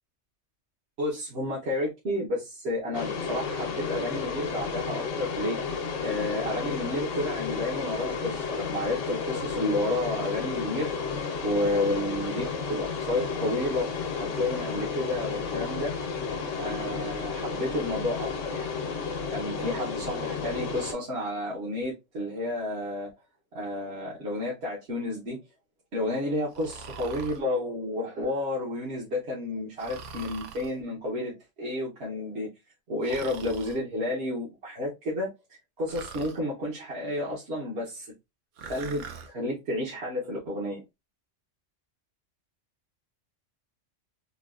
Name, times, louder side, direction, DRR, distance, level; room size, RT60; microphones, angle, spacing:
voice 1, 1.0-5.6 6.0-13.9 14.2-15.9 16.6-18.7 19.3-23.1 23.5-25.4 25.9-32.5 32.9-35.3 35.8-38.1 38.6-40.8, left 1 dB, 60° right, 1.2 m, -31 dB
sound 1, 2.9-20.9, left 5 dB, 80° left, 1.1 m, -32 dB
Breathing, 26.5-27.4 29.8-30.7 33.0-33.8 35.9-36.4 38.6-39.3, right 5 dB, 80° right, 1.0 m, -42 dB
3.8 x 2.2 x 2.3 m
omnidirectional pair, 1.3 m